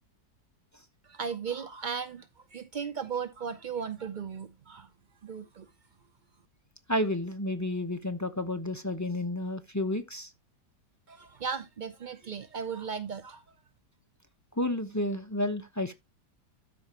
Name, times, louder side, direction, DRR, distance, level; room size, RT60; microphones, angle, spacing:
voice 1, 1.0-4.9 5.2-5.7 11.1-13.4, right 6 dB, 80° right, 0.4 m, -36 dB
voice 2, 6.9-10.3 14.6-15.9, left 1 dB, 25° left, 0.4 m, -31 dB
13.0 x 5.3 x 3.1 m
omnidirectional pair, 1.8 m